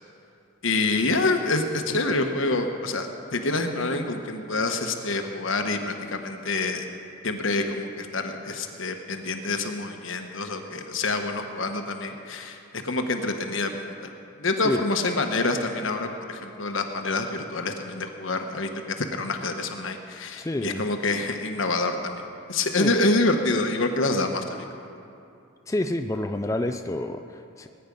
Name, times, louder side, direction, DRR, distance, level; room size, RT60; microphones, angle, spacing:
voice 1, 0.6-6.8 7.2-13.9 14.4-18.7 19.0-22.2 22.5-24.7, left 2 dB, 70° left, 5 dB, 1.2 m, -27 dB
voice 2, 20.4-20.8 22.8-22.9 25.7-27.7, left 1 dB, 15° left, 7 dB, 0.4 m, -28 dB
19.5 x 9.9 x 5.4 m, 2.6 s
head